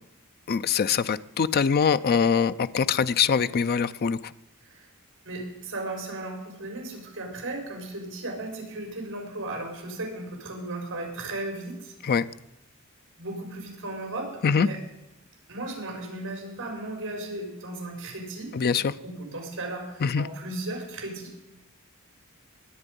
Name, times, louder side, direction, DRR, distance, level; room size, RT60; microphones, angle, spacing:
voice 1, 0.5-4.3 12.0-12.2 14.4-14.7 18.5-18.9 20.0-20.3, left 6 dB, 45° left, 0.4 m, -23 dB
voice 2, 5.2-11.9 13.2-14.8 15.5-18.5 19.0-21.3, right 2 dB, 60° right, 4.9 m, -36 dB
21.0 x 8.2 x 5.3 m
head